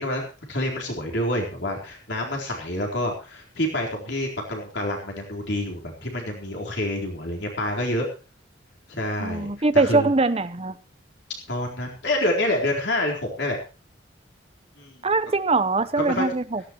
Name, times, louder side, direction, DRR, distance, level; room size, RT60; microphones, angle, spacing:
voice 1, 0.0-8.1 8.9-10.1 11.5-13.6 14.8-15.0 16.0-16.2, left 1 dB, 65° left, 4.1 m, -27 dB
voice 2, 9.2-10.8 15.0-16.6, right 3 dB, 30° right, 0.9 m, -22 dB
17.0 x 15.0 x 3.1 m
head